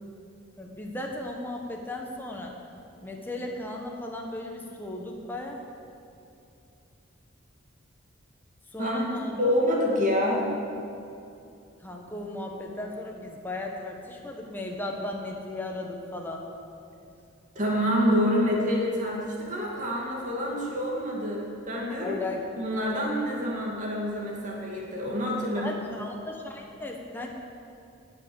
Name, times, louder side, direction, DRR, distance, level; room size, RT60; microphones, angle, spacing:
voice 1, 0.6-2.5 3.0-5.6 8.7-9.5 11.8-16.4 22.0-22.4 25.6-27.3, left 1 dB, 10° left, 0 dB, 1.2 m, -36 dB
voice 2, 8.8-9.1 9.4-10.5 17.5-22.2 22.6-25.7, equal, 40° right, -2 dB, 2.3 m, -27 dB
19.0 x 6.4 x 7.0 m, 2.7 s
head